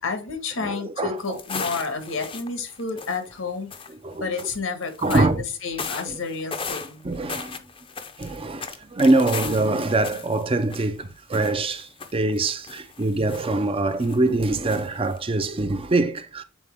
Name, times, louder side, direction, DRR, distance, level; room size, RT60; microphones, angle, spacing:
voice 1, 0.0-3.7 4.1-7.0, left 4 dB, 85° left, 1.5 m, -30 dB
voice 2, 0.6-1.4 4.0-4.3 5.0-5.4 6.1-6.2 7.0-7.6 8.2-16.4, right 2 dB, 25° right, 0.5 m, -24 dB
sound 1, 1.2-3.4 3.7-3.9 4.4-5.3 5.8-11.0 11.3-13.7 14.0-14.4 14.7-15.2, left 5 dB, 25° left, 0.6 m, -36 dB
7.2 x 4.0 x 3.5 m
head